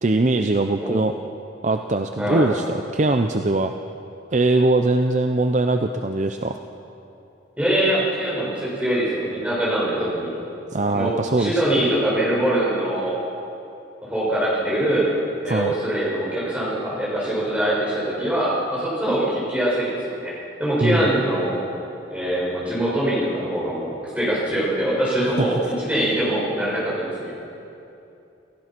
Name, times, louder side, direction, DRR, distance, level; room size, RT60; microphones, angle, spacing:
voice 1, 0.0-1.1 1.6-3.7 4.3-6.6 10.7-11.6 15.5-15.7 20.8-21.1 25.4-25.5, right 2 dB, 40° right, 6 dB, 0.6 m, -21 dB
voice 2, 2.2-2.5 7.6-10.4 10.9-13.2 14.0-15.1 15.4-20.3 20.6-21.6 22.1-27.3, right 1 dB, 5° right, -7 dB, 6.7 m, -23 dB
29.0 x 15.5 x 6.1 m, 2.8 s
head